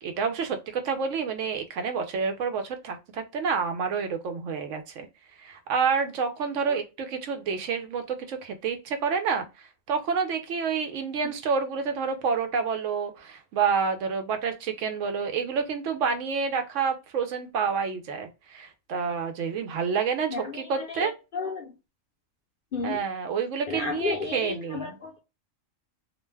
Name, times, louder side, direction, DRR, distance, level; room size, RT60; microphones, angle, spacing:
voice 1, 0.0-5.1 5.4-21.1 22.8-25.0, right 5 dB, 75° right, 0.9 m, -29 dB
voice 2, 20.3-21.7 22.7-23.0 23.7-25.2, left 4 dB, 55° left, 0.6 m, -33 dB
2.5 x 2.2 x 3.2 m
omnidirectional pair, 1.3 m